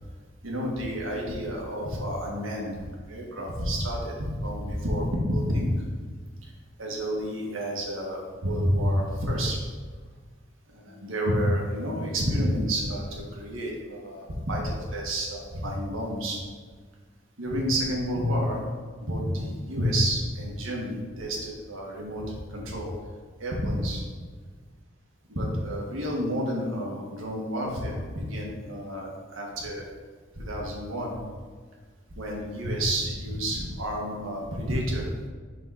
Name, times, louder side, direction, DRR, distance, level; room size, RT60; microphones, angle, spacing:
voice 1, 0.4-5.7 6.8-9.6 10.7-16.4 17.4-18.6 19.0-22.9 23.4-24.0 25.3-29.8 30.3-31.2 32.1-35.1, equal, 80° right, -2 dB, 1.6 m, -29 dB
6.3 x 4.2 x 5.8 m, 1.5 s
head